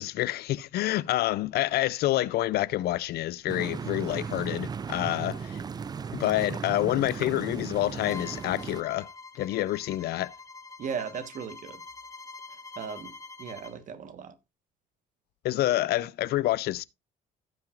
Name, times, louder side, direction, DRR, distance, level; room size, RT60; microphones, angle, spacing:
voice 1, 0.0-5.6 6.1-9.1 9.4-10.3 15.4-16.8, left 15 dB, 70° left, 0.5 m, -28 dB
sound 1, 3.5-8.8, right 6 dB, 25° right, 0.4 m, -36 dB
Bowed string instrument, 8.0-13.8, left 4 dB, 20° left, 1.0 m, -46 dB
voice 2, 10.8-11.8 12.8-13.1 13.4-14.3, right 6 dB, 50° right, 1.3 m, -36 dB
16.0 x 5.9 x 2.5 m
cardioid pair, 110°, 17 cm